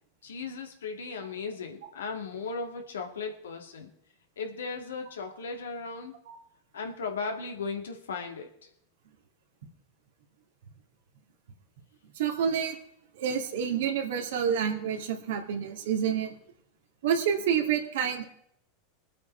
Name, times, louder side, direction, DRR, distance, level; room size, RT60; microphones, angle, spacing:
voice 1, 0.2-3.9 4.4-6.1 6.7-8.5, left 4 dB, 85° left, 3 dB, 2.3 m, -36 dB
voice 2, 12.2-12.8 13.1-16.3 17.0-18.2, right 8 dB, 75° right, 3 dB, 2.3 m, -28 dB
22.5 x 8.3 x 4.5 m, 0.73 s
hypercardioid pair, 95°, 0 cm